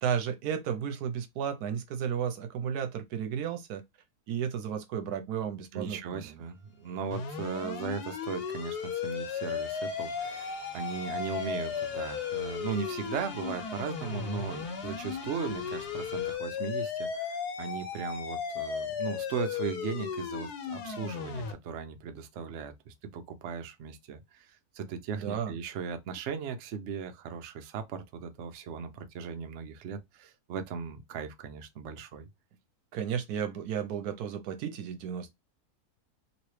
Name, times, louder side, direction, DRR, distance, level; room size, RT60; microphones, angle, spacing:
voice 1, 0.0-3.8 4.3-6.4 25.1-25.6 32.9-35.4, right 8 dB, 80° right, 1.2 m, -33 dB
voice 2, 5.7-24.5 24.7-32.3, right 6 dB, 60° right, 0.8 m, -37 dB
sound 1, 6.1-6.2 6.4-16.4, left 1 dB, 50° left, 0.8 m, -49 dB
sound 2, 7.1-21.5, left 6 dB, 85° left, 1.3 m, -35 dB
3.0 x 3.0 x 3.1 m
omnidirectional pair, 1.6 m